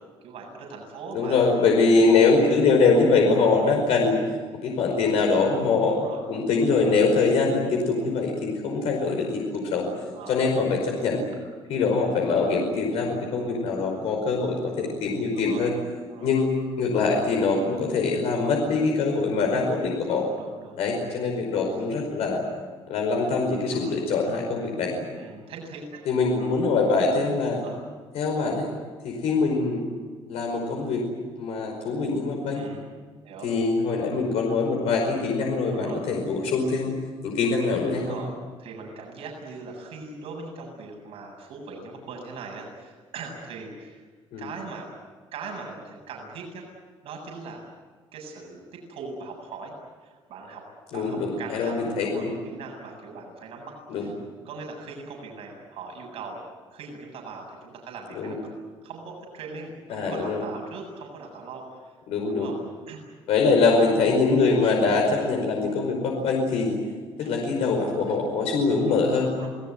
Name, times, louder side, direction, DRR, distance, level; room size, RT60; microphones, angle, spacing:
voice 1, 0.2-1.5 5.9-6.2 10.1-10.5 11.7-11.9 15.3-15.6 16.1-16.3 20.1-21.0 23.7-24.0 25.1-26.0 26.4-26.5 27.6-27.8 32.5-32.9 33.2-33.5 35.7-36.0 37.9-38.3 38.6-44.0 44.4-45.0 45.3-46.7 47.0-47.6 48.1-49.7 50.0-50.6 50.9-54.1 54.4-56.4 56.7-58.4 58.8-61.9 62.2-62.5 62.9-63.0 64.6-64.7 67.2-67.3 68.1-68.2 69.2-69.5, right 4 dB, 70° right, 1 dB, 7.6 m, -40 dB
voice 2, 1.1-4.2 4.6-5.9 6.3-9.9 10.3-11.2 11.7-15.7 16.2-16.5 16.8-20.2 20.8-22.4 22.9-25.0 26.0-27.6 28.1-28.7 29.0-29.8 30.3-31.0 31.4-32.7 33.4-36.9 37.2-38.2 44.3-44.5 50.9-52.3 53.9-54.1 58.1-58.3 59.9-60.4 62.1-62.5 63.3-66.7 67.2-69.3, left 4 dB, 90° left, 1 dB, 5.1 m, -23 dB
28.0 x 19.5 x 9.5 m, 1.5 s
cardioid pair, 160°, 10 cm